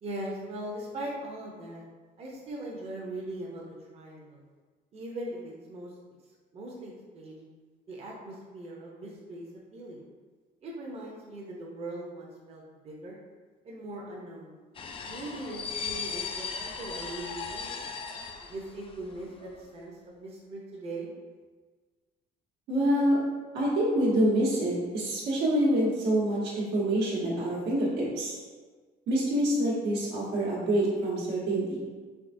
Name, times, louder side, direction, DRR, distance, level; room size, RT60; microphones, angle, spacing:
voice 1, 0.0-1.8 2.2-4.4 4.9-5.9 6.5-7.4 7.9-9.5 9.7-10.0 10.6-13.2 13.6-14.6 15.1-17.9 18.5-21.1, right 1 dB, 35° right, -3 dB, 0.6 m, -40 dB
sound 1, 14.8-19.1 19.4-19.6, left 5 dB, 35° left, 0.3 m, -37 dB
voice 2, 22.7-23.2 23.5-28.3 29.1-31.8, right 1 dB, 90° right, -5 dB, 1.2 m, -26 dB
3.5 x 3.3 x 2.6 m, 1.4 s
cardioid pair, 110°, 17 cm